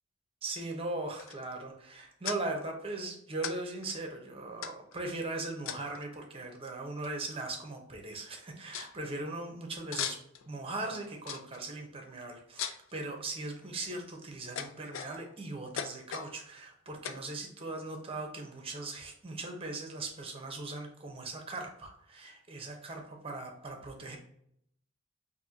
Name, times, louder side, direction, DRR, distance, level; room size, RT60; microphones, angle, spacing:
voice 1, 0.4-10.2 10.5-24.2, right 2 dB, 30° right, 3 dB, 0.9 m, -39 dB
sound 1, 1.2-1.6 2.2-2.4 3.4-3.6 3.8-3.9 4.6-5.0 5.7-6.1 7.0-7.1 7.4-7.8 8.1-8.2 8.7-8.9 9.9-10.5 11.3-11.6 12.6-12.9 13.6-14.0 14.6-15.4 15.8-16.3 17.0-17.3, left 8 dB, 90° left, 0.4 m, -38 dB
5.4 x 2.7 x 2.7 m, 0.70 s
head